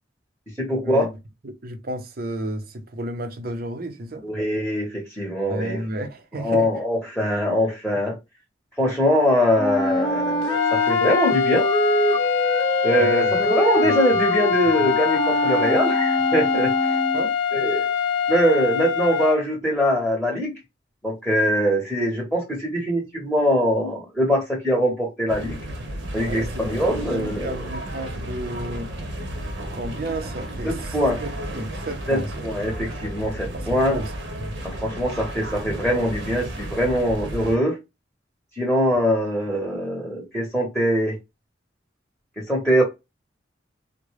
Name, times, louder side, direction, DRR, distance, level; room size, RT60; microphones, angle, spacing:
voice 1, 0.6-1.1 4.2-5.8 6.3-8.2 8.8-11.7 12.8-17.0 17.5-17.9 18.3-20.6 21.0-25.6 26.1-27.7 30.6-31.2 32.1-34.0 34.6-37.8 38.6-41.2 42.4-42.8, equal, ahead, 0.9 m, -22 dB
voice 2, 1.4-4.2 5.5-6.7 13.0-13.3 17.1-17.3 26.2-29.0 29.6-30.7 31.2-32.3 33.5-34.1 34.4-34.6, right 1 dB, 55° right, 0.6 m, -32 dB
Wind instrument woodwind instrument, 9.6-17.3, equal, 25° left, 0.5 m, -25 dB
sound 1, 10.4-19.4, left 7 dB, 80° left, 0.4 m, -23 dB
sound 2, 25.3-37.6, right 1 dB, 85° right, 1.0 m, -33 dB
3.7 x 2.2 x 3.1 m
head